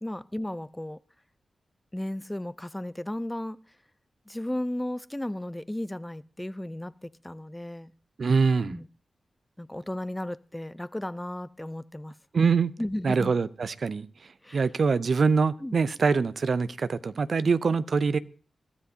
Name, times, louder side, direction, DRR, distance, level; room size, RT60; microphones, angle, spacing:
voice 1, 0.0-1.0 1.9-3.6 4.3-7.9 8.7-8.9 9.6-12.1 12.8-13.3 14.4-14.6 15.6-15.8, left 1 dB, 15° left, 0.5 m, -34 dB
voice 2, 8.2-8.8 12.3-12.7 13.0-14.1 14.5-18.2, right 5 dB, 65° right, 0.5 m, -24 dB
22.5 x 13.0 x 2.8 m
cardioid pair, 45°, 0 cm